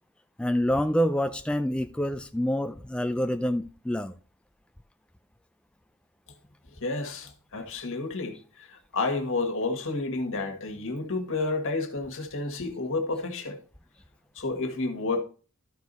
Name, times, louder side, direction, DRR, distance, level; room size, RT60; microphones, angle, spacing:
voice 1, 0.4-4.1, equal, 5° left, 0.3 m, -27 dB
voice 2, 6.8-13.6 14.3-15.2, left 3 dB, 65° left, 1.7 m, -30 dB
12.5 x 4.8 x 4.1 m
head